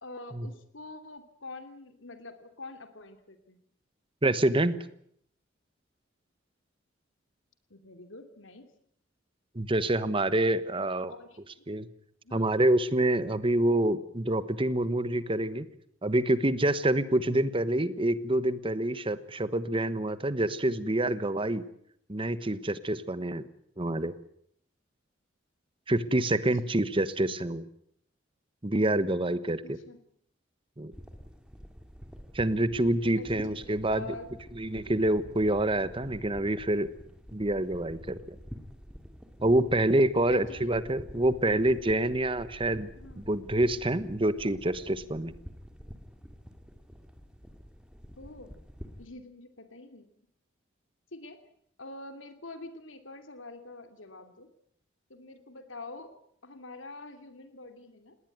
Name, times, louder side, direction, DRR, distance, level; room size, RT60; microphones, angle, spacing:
voice 1, 0.0-3.6 7.7-8.7 11.1-11.4 12.2-12.5 17.3-17.5 26.3-26.8 29.6-30.0 33.2-34.3 40.3-40.7 42.9-43.3 48.2-48.5 49.0-50.1 51.1-51.4 51.8-54.5 55.1-56.1 56.4-58.2, left 2 dB, 85° left, 8 dB, 2.8 m, -46 dB
voice 2, 4.2-4.7 9.5-11.1 11.7-11.9 12.3-15.6 16.0-21.6 22.1-23.4 23.8-24.1 25.9-27.6 28.6-29.6 30.8-30.9 32.3-34.1 34.6-36.9 37.3-38.4 39.4-42.9 43.2-45.3, right 1 dB, 25° right, 14 dB, 1.2 m, -27 dB
sound 1, 30.9-49.1, equal, 5° right, 2.2 m, -48 dB
19.5 x 19.0 x 9.3 m, 0.68 s
head